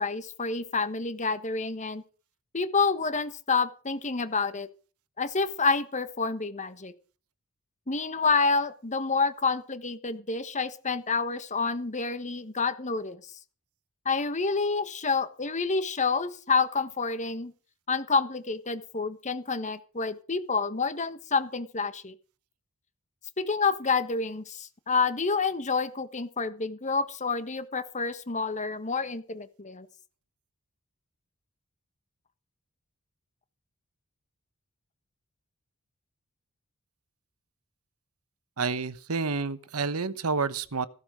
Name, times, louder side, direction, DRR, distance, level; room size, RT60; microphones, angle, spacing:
voice 1, 0.0-2.0 2.5-4.7 5.2-6.9 7.9-13.2 14.0-17.5 17.9-22.1 23.4-29.9, left 4 dB, 35° left, 1.4 m, -28 dB
voice 2, 38.6-40.9, right 4 dB, 75° right, 1.1 m, -29 dB
15.5 x 12.5 x 5.1 m
head